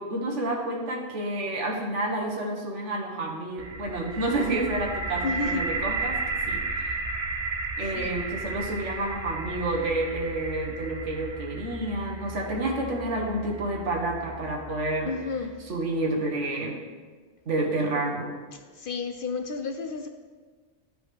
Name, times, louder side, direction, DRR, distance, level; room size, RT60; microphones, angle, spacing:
voice 1, 0.0-6.2 6.4-6.9 7.8-15.1 15.7-16.8 17.5-18.3, right 2 dB, 80° right, 0 dB, 1.5 m, -29 dB
sound 1, 3.6-15.4, right 3 dB, 40° right, 0.6 m, -34 dB
voice 2, 5.2-5.6 8.0-8.1 15.1-15.6 18.7-20.1, left 4 dB, 60° left, 5 dB, 0.6 m, -31 dB
12.5 x 4.9 x 3.4 m, 1.5 s
omnidirectional pair, 1.2 m